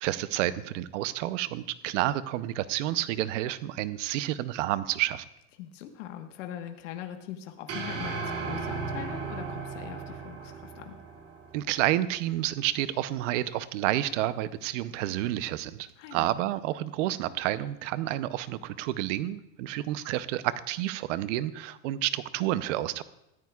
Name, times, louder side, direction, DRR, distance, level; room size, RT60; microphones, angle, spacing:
voice 1, 0.0-5.2 11.5-23.0, right 14 dB, 80° right, 14 dB, 0.8 m, -30 dB
voice 2, 5.6-11.0 16.0-16.3, left 10 dB, 90° left, 4 dB, 1.4 m, -42 dB
sound 1, 7.7-12.1, right 4 dB, 40° right, 3.4 m, -36 dB
19.5 x 14.0 x 2.4 m, 0.86 s
supercardioid pair, 135°, 36 cm